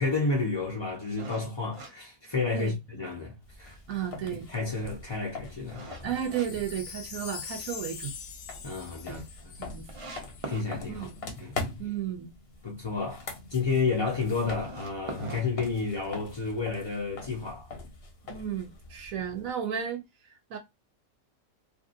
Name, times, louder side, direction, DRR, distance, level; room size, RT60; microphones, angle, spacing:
voice 1, 0.0-3.8 4.3-6.0 8.6-9.7 10.5-11.1 11.4-11.7 12.6-17.7, left 4 dB, 35° left, 0.4 m, -31 dB
sound 1, 1.2-2.9 3.3-3.4 3.9-6.5 6.9-7.6 8.0-8.1 8.4-8.5 8.7-8.8 9.4-9.5 9.9-10.7 14.4-16.3, right 3 dB, 40° right, 0.4 m, -43 dB
sound 2, 3.4-19.5, left 3 dB, 50° left, 0.9 m, -43 dB
voice 2, 3.9-4.5 6.0-8.1 9.1-9.2 9.6-9.8 10.9-11.1 11.8-12.3 18.3-20.6, right 9 dB, 75° right, 1.0 m, -33 dB
Wind chime, 6.2-10.5 11.1-11.2, left 6 dB, 75° left, 1.1 m, -43 dB
2.9 x 2.6 x 2.5 m
omnidirectional pair, 1.5 m